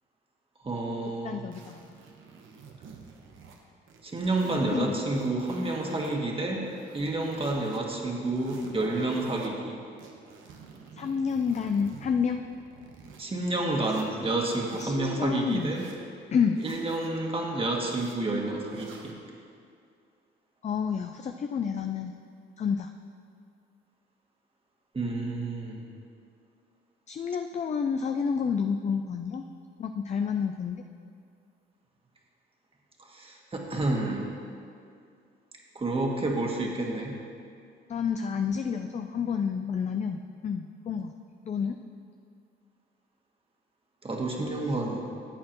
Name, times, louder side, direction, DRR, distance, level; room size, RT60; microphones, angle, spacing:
voice 1, 0.6-1.4 4.0-6.6 6.9-9.8 13.2-15.8 16.6-19.1 24.9-25.8 33.1-34.3 35.8-37.2 44.0-45.0, right 2 dB, 30° right, -1 dB, 1.7 m, -29 dB
voice 2, 1.2-1.8 4.7-4.9 10.9-12.4 14.7-15.7 16.3-16.6 20.6-22.1 22.6-22.9 27.1-29.4 29.8-30.8 37.9-41.1 41.5-41.8, left 6 dB, 35° left, 6 dB, 0.5 m, -29 dB
sound 1, 1.5-3.6 3.9-6.2 6.6-7.8 8.2-9.5 10.0-13.2 13.7-14.9 15.4-16.0 16.5-17.1 17.7-18.2 18.7-19.2, right 5 dB, 80° right, 1.2 m, -48 dB
14.5 x 8.4 x 3.0 m, 2.4 s
cardioid pair, 90°, 20 cm